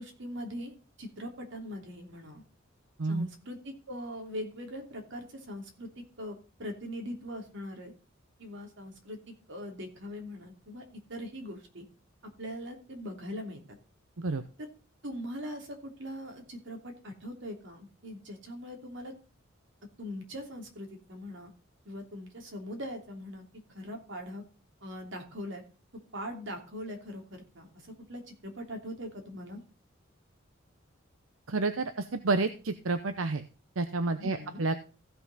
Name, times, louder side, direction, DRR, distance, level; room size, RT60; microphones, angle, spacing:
voice 1, 0.0-2.4 3.1-7.9 8.4-11.8 12.4-13.8 14.6-14.7 15.0-19.1 20.0-21.5 21.8-24.4 24.8-25.6 26.1-29.6 34.2-34.6, equal, 65° right, 3 dB, 3.0 m, -41 dB
voice 2, 31.5-33.4 33.8-34.7, right 3 dB, 90° right, 10 dB, 0.8 m, -30 dB
15.5 x 6.0 x 4.1 m, 0.35 s
head